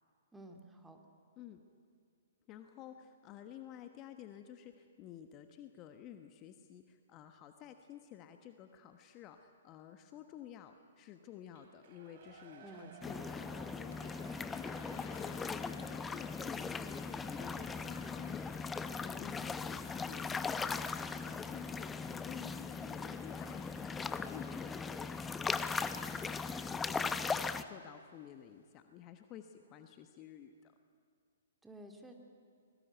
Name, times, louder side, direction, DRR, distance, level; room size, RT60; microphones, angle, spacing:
voice 1, 0.3-1.0 12.6-13.1 14.9-15.2 31.6-32.1, right 1 dB, 5° right, 3 dB, 2.6 m, -53 dB
voice 2, 2.5-18.5 18.7-20.8 21.2-27.3 27.6-30.7, left 10 dB, 30° left, 7 dB, 1.3 m, -52 dB
Shout / Cheering, 11.5-19.8 20.2-20.3, right 6 dB, 50° right, 3.3 m, -59 dB
sound 1, 13.0-27.6, left 5 dB, 10° left, 0.8 m, -39 dB
sound 2, 13.9-26.7, left 7 dB, 55° left, 2.0 m, -60 dB
24.5 x 20.5 x 9.3 m, 2.1 s
hypercardioid pair, 125°, 0 cm